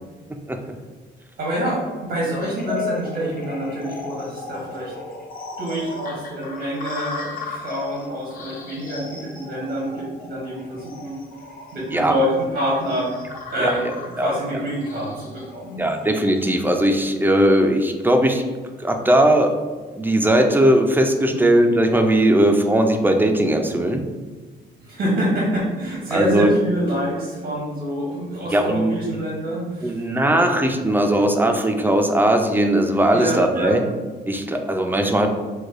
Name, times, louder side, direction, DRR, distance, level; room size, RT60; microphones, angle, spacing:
voice 1, 1.4-4.9 5.6-11.2 11.7-13.1 13.5-13.8 14.1-15.8 21.3-21.6 24.8-30.0 33.1-33.7, equal, 70° right, -4 dB, 1.1 m, -26 dB
sound 1, 2.4-16.7, left 4 dB, 45° left, 0.6 m, -36 dB
voice 2, 15.8-18.4 18.8-19.5 20.0-24.0 26.1-26.5 28.5-29.2 29.8-33.8 34.3-35.3, right 1 dB, 10° right, 4 dB, 0.4 m, -18 dB
4.7 x 2.3 x 2.5 m, 1.3 s
cardioid pair, 90°, 20 cm